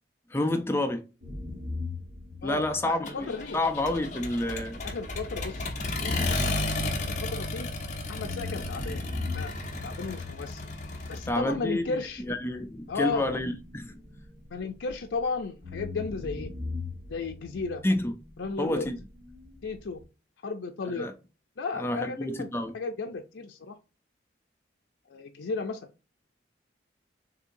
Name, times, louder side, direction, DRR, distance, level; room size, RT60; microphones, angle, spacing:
voice 1, 0.3-1.1 2.4-4.8 11.3-14.0 17.8-18.1 18.6-19.0 21.0-21.1 21.7-22.7, left 1 dB, 15° left, 0.4 m, -29 dB
sound 1, 1.2-7.7 8.2-15.2 15.6-20.0, left 3 dB, 80° right, 1.5 m, -42 dB
voice 2, 2.4-3.6 4.8-5.7 6.0-7.7 8.1-9.0 9.3-9.5 9.8-10.7 11.1-12.2 12.9-13.3 14.5-16.5 17.1-17.8 18.4-18.9 19.6-20.0 20.4-21.1 21.6-23.7 25.1-25.9, left 4 dB, 85° left, 0.5 m, -34 dB
Accelerating revving vroom, 3.1-11.3, left 2 dB, 40° left, 0.8 m, -33 dB
6.6 x 2.7 x 2.6 m
head